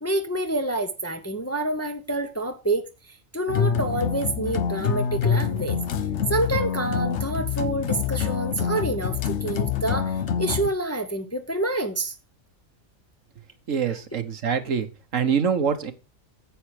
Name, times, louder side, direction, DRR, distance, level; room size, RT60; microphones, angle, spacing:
voice 1, 0.0-5.8 6.3-12.2 13.9-14.0, right 2 dB, 15° left, 0.8 m, -28 dB
sound 1, 3.5-10.7, left 7 dB, 60° left, 1.1 m, -26 dB
voice 2, 13.7-14.9 15.1-15.9, right 7 dB, 70° right, 1.5 m, -24 dB
9.5 x 7.9 x 4.8 m
omnidirectional pair, 1.4 m